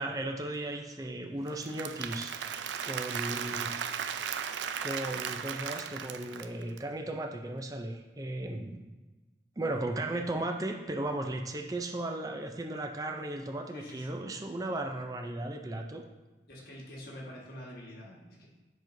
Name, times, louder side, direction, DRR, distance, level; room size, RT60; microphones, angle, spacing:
voice 1, 0.0-2.3 2.8-3.7 4.8-8.9 9.6-16.0, right 2 dB, 20° right, 3 dB, 0.4 m, -36 dB
Applause / Crowd, 1.5-6.8, right 7 dB, 85° right, 0.4 m, -36 dB
voice 2, 3.0-3.7 9.6-10.2 13.7-14.3 16.5-18.5, equal, 55° left, -4 dB, 1.5 m, -47 dB
7.3 x 5.9 x 2.6 m, 1.2 s
head